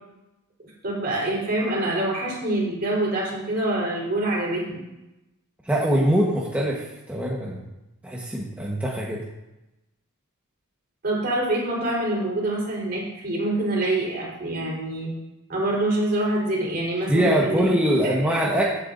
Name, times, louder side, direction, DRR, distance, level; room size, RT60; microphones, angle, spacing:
voice 1, 0.8-4.8 11.0-15.1 15.5-17.7 18.0-18.4, right 1 dB, 45° right, -4 dB, 4.1 m, -25 dB
voice 2, 5.6-7.6 8.0-9.2 17.1-18.8, equal, 5° right, -5 dB, 1.3 m, -23 dB
15.5 x 8.6 x 2.6 m, 0.95 s
head